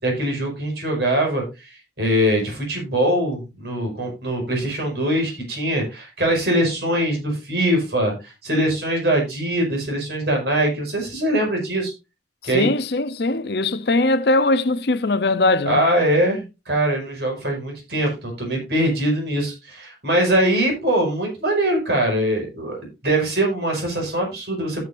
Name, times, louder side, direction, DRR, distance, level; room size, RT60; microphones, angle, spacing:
voice 1, 0.0-1.7 2.0-11.9 12.4-12.7 15.7-24.9, right 1 dB, 65° right, 5.6 m, -22 dB
voice 2, 12.5-15.8, left 2 dB, 60° left, 0.7 m, -20 dB
15.5 x 7.2 x 2.6 m
head